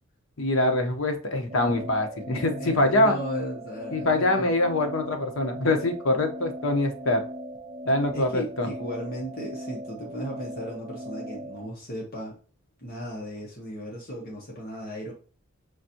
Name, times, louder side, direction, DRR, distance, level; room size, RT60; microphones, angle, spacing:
voice 1, 0.4-3.1 3.9-7.2 7.9-8.7, left 2 dB, 70° left, 5 dB, 0.9 m, -24 dB
sound 1, 1.5-11.7, equal, 30° right, 0.7 m, -39 dB
voice 2, 2.6-4.5 8.1-12.3 12.8-15.1, equal, 45° left, -2 dB, 1.2 m, -36 dB
5.0 x 2.6 x 2.8 m, 0.39 s
head